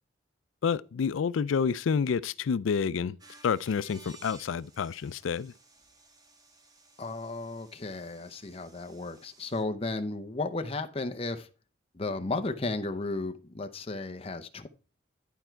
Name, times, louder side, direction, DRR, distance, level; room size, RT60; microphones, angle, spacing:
voice 1, 0.6-3.2 3.4-5.5, left 6 dB, 85° left, 0.4 m, -29 dB
sound 1, 3.2-9.6, right 2 dB, 20° right, 1.2 m, -57 dB
voice 2, 7.0-11.5 11.9-14.7, left 2 dB, 30° left, 0.7 m, -34 dB
11.0 x 4.6 x 4.5 m
head